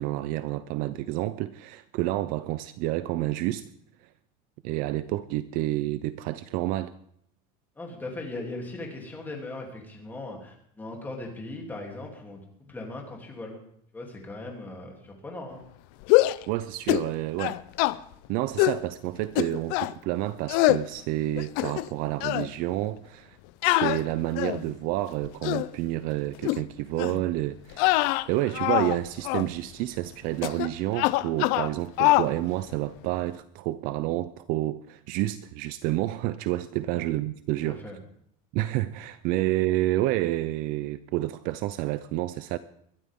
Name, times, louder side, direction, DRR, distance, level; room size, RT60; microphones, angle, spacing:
voice 1, 0.0-3.7 4.6-6.9 16.5-17.6 18.3-23.4 23.6-37.8 38.5-42.6, right 16 dB, 45° right, 0.5 m, -29 dB
voice 2, 7.8-13.6 13.9-15.6 36.9-37.0 37.6-38.0, left 2 dB, 10° left, 3.0 m, -39 dB
sound 1, 16.0-16.4 16.9-17.1 17.4-18.0 18.6-18.8 19.4-19.9 20.5-20.8 21.4-21.9 22.2-22.5 23.6-24.7 25.2-25.7 26.4-26.6 27.0-27.2 27.7-29.0 29.2-29.5 30.4-30.7 30.9-31.7 32.0-32.3, left 19 dB, 50° left, 0.5 m, -24 dB
21.5 x 12.5 x 3.7 m
cardioid pair, 170°, 20 cm